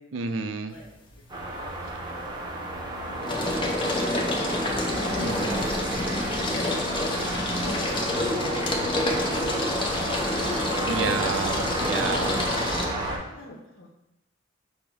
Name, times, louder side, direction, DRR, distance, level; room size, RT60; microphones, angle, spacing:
voice 1, 0.1-0.7 5.2-5.7 10.8-12.3, right 5 dB, 80° right, 8 dB, 0.4 m, -30 dB
voice 2, 0.7-2.5 12.8-13.9, left 2 dB, 80° left, -3 dB, 0.7 m, -48 dB
sound 1, 0.8-1.4 1.7-12.9, left 1 dB, 25° left, 0.6 m, -28 dB
sound 2, 1.3-13.2, right 1 dB, 25° right, 0.6 m, -31 dB
5.2 x 2.1 x 4.6 m, 0.89 s
head